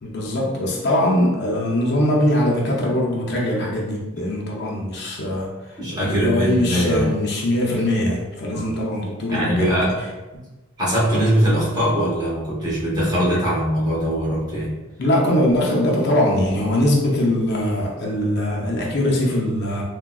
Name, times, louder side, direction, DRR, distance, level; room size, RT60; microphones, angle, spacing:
voice 1, 0.0-9.9 15.0-19.8, left 1 dB, 50° left, -2 dB, 0.5 m, -21 dB
voice 2, 5.8-7.1 8.5-8.7 9.3-10.0 10.8-14.7, equal, 20° right, -7 dB, 0.8 m, -21 dB
3.5 x 2.2 x 2.3 m, 1.1 s
head